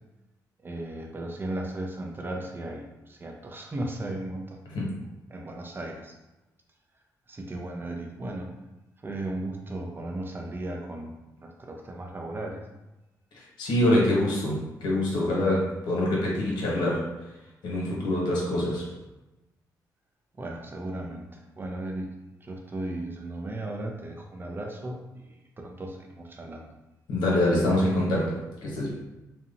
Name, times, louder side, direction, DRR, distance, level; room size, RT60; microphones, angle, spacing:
voice 1, 0.6-4.6 5.3-6.2 7.3-8.5 9.0-11.1 11.4-12.7 20.4-22.1 22.4-26.7, right 1 dB, 30° right, 2 dB, 0.5 m, -36 dB
voice 2, 13.3-17.0 17.6-18.9 27.1-28.9, left 1 dB, 80° left, -3 dB, 0.9 m, -25 dB
2.8 x 2.1 x 2.5 m, 1.0 s
cardioid pair, 75°, 7 cm